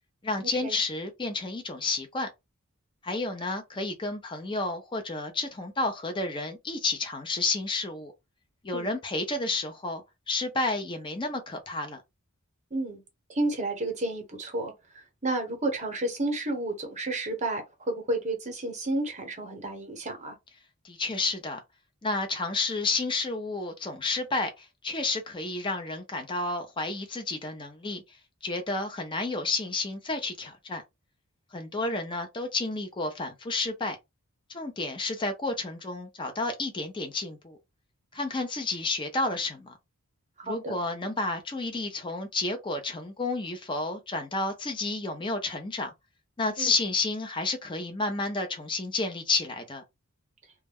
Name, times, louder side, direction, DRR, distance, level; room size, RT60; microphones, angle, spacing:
voice 1, 0.2-2.3 3.0-8.1 8.6-12.0 20.8-21.6 22.0-28.0 28.4-30.8 31.5-34.0 34.5-37.6 38.1-39.7 40.4-45.9 46.4-49.8, left 3 dB, 20° left, 0.5 m, -31 dB
voice 2, 13.3-14.7 15.2-20.3 40.4-40.8 46.6-46.7, right 2 dB, 30° right, 0.9 m, -31 dB
2.2 x 2.1 x 3.4 m
head